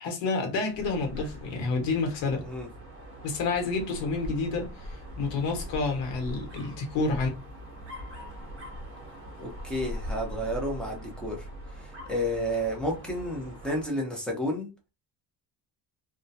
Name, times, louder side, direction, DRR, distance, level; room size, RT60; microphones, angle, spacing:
voice 1, 0.0-2.4 3.2-7.3, left 3 dB, 75° left, 1.1 m, -29 dB
Dog, 0.7-14.0, equal, 30° right, 0.8 m, -41 dB
voice 2, 9.4-11.5 11.8-14.7, equal, ahead, 0.6 m, -31 dB
2.3 x 2.1 x 2.7 m
cardioid pair, 150°, 43 cm